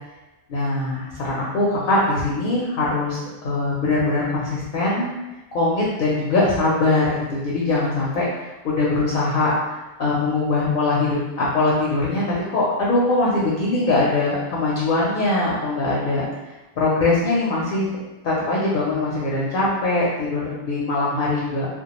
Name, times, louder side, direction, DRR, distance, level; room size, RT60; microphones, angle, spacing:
voice 1, 0.5-5.1 5.5-9.5 10.0-16.2 16.8-17.9 18.2-21.7, left 2 dB, 60° left, -5 dB, 0.6 m, -22 dB
2.2 x 2.2 x 2.9 m, 1.0 s
omnidirectional pair, 1.2 m